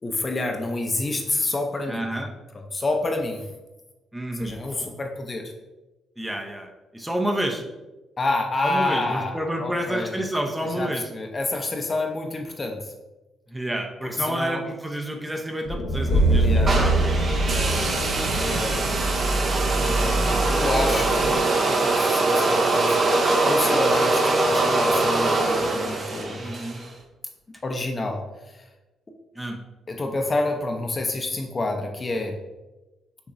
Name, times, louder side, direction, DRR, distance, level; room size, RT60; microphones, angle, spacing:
voice 1, 0.0-2.3 2.7-3.4 4.4-5.5 8.2-10.1 10.7-12.9 14.0-14.6 16.4-16.8 17.4-18.0 18.3-18.9 19.8-26.5 27.6-28.2 28.5-28.6 29.9-32.3, left 2 dB, 30° left, 3 dB, 0.6 m, -28 dB
voice 2, 1.9-2.3 4.1-4.5 6.2-7.6 8.6-11.1 13.5-17.0 26.4-26.8 29.4-29.6, right 1 dB, 10° right, 2 dB, 0.6 m, -29 dB
sound 1, 15.7-19.8, right 1 dB, 85° left, 1.0 m, -24 dB
sound 2, 16.1-21.4, right 2 dB, 90° right, 0.6 m, -27 dB
sound 3, 16.7-26.9, right 2 dB, 45° right, 0.7 m, -23 dB
6.7 x 2.9 x 2.5 m, 1.1 s
cardioid pair, 90°, 0 cm